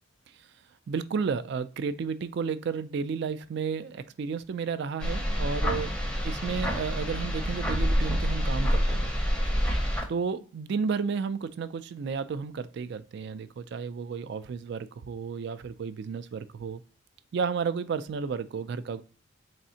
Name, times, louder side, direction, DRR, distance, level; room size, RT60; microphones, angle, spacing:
voice 1, 0.9-6.0 6.2-9.1 10.1-16.8 17.3-19.0, right 5 dB, 55° right, 0.3 m, -32 dB
sound 1, 5.0-10.0, equal, 5° left, 0.6 m, -27 dB
4.1 x 3.5 x 2.7 m
head